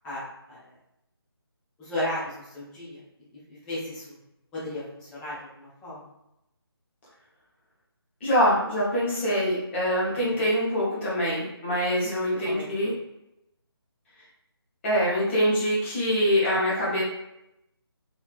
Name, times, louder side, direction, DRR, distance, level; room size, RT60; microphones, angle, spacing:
voice 1, 0.0-0.7 1.8-3.0 3.3-4.2 4.5-6.1 10.1-10.4 12.4-12.9, left 1 dB, 5° left, -9 dB, 0.4 m, -35 dB
voice 2, 8.2-12.9 14.8-17.0, equal, 30° left, -6 dB, 1.0 m, -24 dB
3.1 x 2.8 x 2.5 m, 0.86 s
figure-of-eight pair, 155°, 13 cm